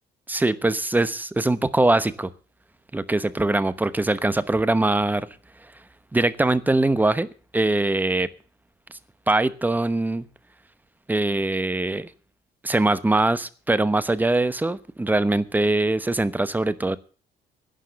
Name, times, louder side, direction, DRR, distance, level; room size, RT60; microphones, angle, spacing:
voice 1, 0.3-2.3 2.9-5.3 6.1-7.3 7.5-8.3 9.3-10.3 11.1-12.1 12.6-17.0, right 2 dB, 10° right, 0.9 m, -22 dB
11.5 x 10.0 x 6.9 m
cardioid pair, 110°, 17 cm